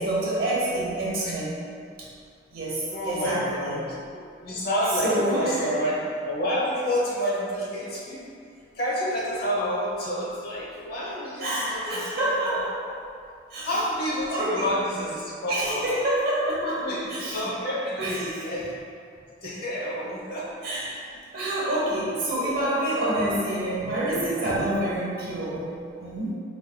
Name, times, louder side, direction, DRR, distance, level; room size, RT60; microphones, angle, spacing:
voice 1, 0.0-1.6 2.5-3.8 5.0-5.7 11.1-12.8 13.5-13.7 14.3-14.7 15.5-16.8 17.1-17.4 18.0-18.3 20.6-21.0 21.3-26.3, right 1 dB, 55° right, -7 dB, 0.9 m, -27 dB
voice 2, 2.9-8.2 8.7-12.2 12.5-12.6 13.6-15.9 16.5-18.7 19.4-20.7, equal, 55° left, -6 dB, 0.8 m, -29 dB
4.2 x 3.2 x 2.2 m, 2.3 s
head